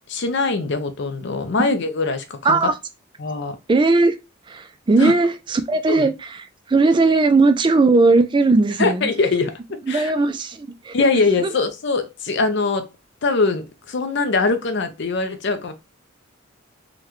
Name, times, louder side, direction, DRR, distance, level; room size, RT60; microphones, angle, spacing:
voice 1, 0.1-2.7 3.2-3.6 5.0-5.1 5.9-6.1 8.8-9.5 9.9-10.1 10.9-12.9 13.2-15.7, left 3 dB, 60° left, 0.5 m, -22 dB
voice 2, 3.7-4.2 4.5-6.4 6.7-9.1 9.9-10.9 11.4-11.5, right 3 dB, 25° right, 0.3 m, -18 dB
3.7 x 2.2 x 3.0 m
head